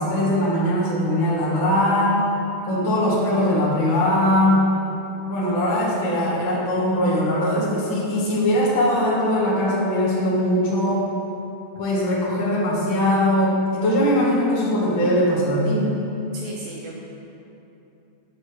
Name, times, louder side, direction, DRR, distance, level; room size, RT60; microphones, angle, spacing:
voice 1, 0.0-2.2 2.6-4.7 5.3-11.0 11.8-15.9, left 1 dB, 55° left, -7 dB, 1.3 m, -21 dB
voice 2, 16.3-17.0, right 3 dB, 80° right, -3 dB, 2.2 m, -35 dB
7.5 x 6.5 x 3.2 m, 2.9 s
omnidirectional pair, 4.6 m